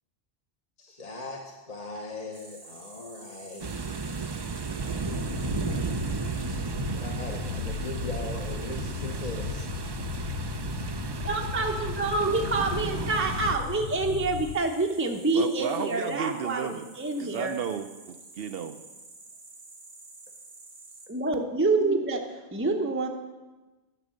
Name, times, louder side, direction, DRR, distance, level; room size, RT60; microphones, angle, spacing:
voice 1, 0.8-4.0 6.1-9.7, left 2 dB, 40° left, 0 dB, 1.0 m, -40 dB
sound 1, 2.3-21.1, right 3 dB, 85° right, 2.0 m, -51 dB
sound 2, 3.6-13.6, right 4 dB, 40° right, 0.4 m, -34 dB
sound 3, 5.0-14.6, left 8 dB, 85° left, 1.0 m, -36 dB
voice 2, 11.2-17.6 21.1-23.1, right 3 dB, 15° right, 2 dB, 0.7 m, -27 dB
voice 3, 15.3-16.8 17.2-18.8, right 7 dB, 70° right, 8 dB, 0.8 m, -33 dB
11.0 x 6.2 x 7.6 m, 1.2 s
omnidirectional pair, 1.1 m